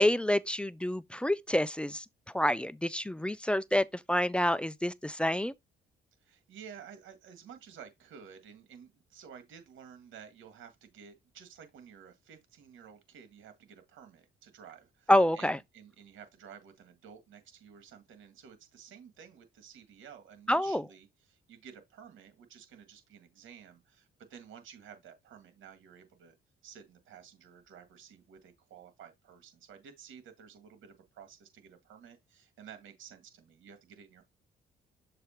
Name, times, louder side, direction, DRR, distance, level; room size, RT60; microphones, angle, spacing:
voice 1, 0.0-2.1 2.3-5.5 15.1-15.6 20.5-20.8, left 1 dB, 5° left, 0.4 m, -27 dB
voice 2, 6.2-26.4 26.6-34.2, right 7 dB, 75° right, 2.0 m, -52 dB
6.9 x 3.1 x 4.3 m
cardioid pair, 90°, 20 cm